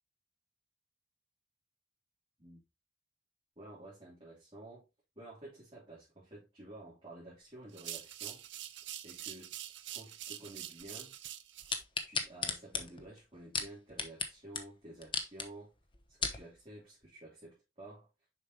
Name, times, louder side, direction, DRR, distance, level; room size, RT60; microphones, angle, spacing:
voice 1, 3.6-4.9 5.1-8.4 9.0-9.5 9.9-11.2 12.0-15.7 16.1-18.1, right 1 dB, 30° right, 2.9 m, -51 dB
sound 1, 7.7-11.8, right 12 dB, 70° right, 0.6 m, -45 dB
sound 2, 11.7-14.3 14.6-14.7 15.0-15.5 15.9-16.4 17.0-17.1, left 5 dB, 25° left, 0.8 m, -35 dB
6.9 x 5.2 x 2.8 m
head